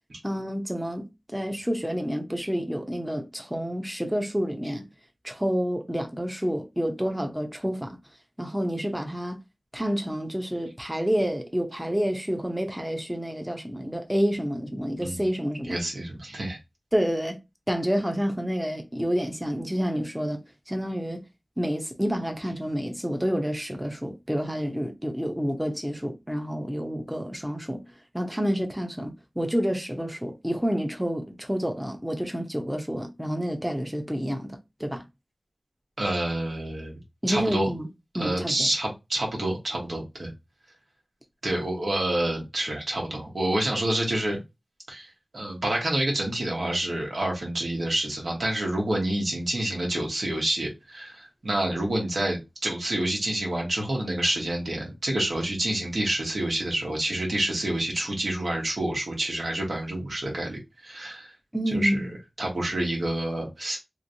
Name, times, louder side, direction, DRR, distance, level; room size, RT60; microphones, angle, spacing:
voice 1, 0.2-4.9 5.2-8.0 8.4-9.4 9.7-15.8 16.9-17.4 17.7-21.2 21.6-27.8 28.1-35.0 37.2-37.9 38.1-38.7 61.5-62.1, equal, 10° right, 0.7 m, -29 dB
voice 2, 15.6-16.6 36.0-37.0 37.3-37.7 38.2-40.3 41.4-44.4 44.9-61.3 61.7-62.1 62.4-63.8, right 1 dB, 80° right, 1.3 m, -28 dB
3.1 x 3.0 x 2.7 m
wide cardioid pair, 45°, 0 cm